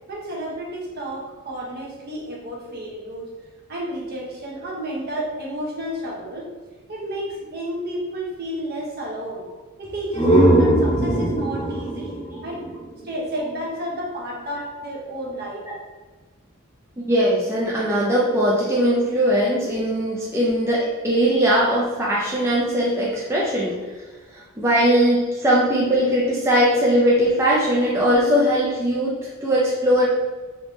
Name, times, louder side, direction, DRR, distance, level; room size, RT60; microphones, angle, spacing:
voice 1, 0.1-3.3 3.7-6.5 6.9-9.5 9.8-12.7 13.0-15.6 25.1-25.3 29.4-29.5, right 1 dB, 45° right, -2 dB, 0.7 m, -31 dB
sound 1, 9.8-13.5, right 1 dB, 20° left, 0.7 m, -20 dB
voice 2, 17.0-23.8 24.3-30.1, equal, 10° right, -6 dB, 0.4 m, -20 dB
3.4 x 2.6 x 3.1 m, 1.3 s
head